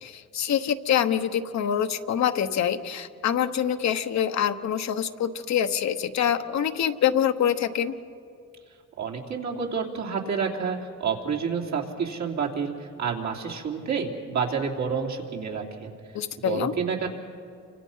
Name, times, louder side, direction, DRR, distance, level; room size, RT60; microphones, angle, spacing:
voice 1, 0.0-7.9 16.1-16.7, left 9 dB, 65° left, 8 dB, 1.1 m, -25 dB
voice 2, 9.0-15.9 16.4-17.1, right 6 dB, 65° right, 0 dB, 3.3 m, -29 dB
29.0 x 25.0 x 5.7 m, 2.3 s
cardioid pair, 90°, 30 cm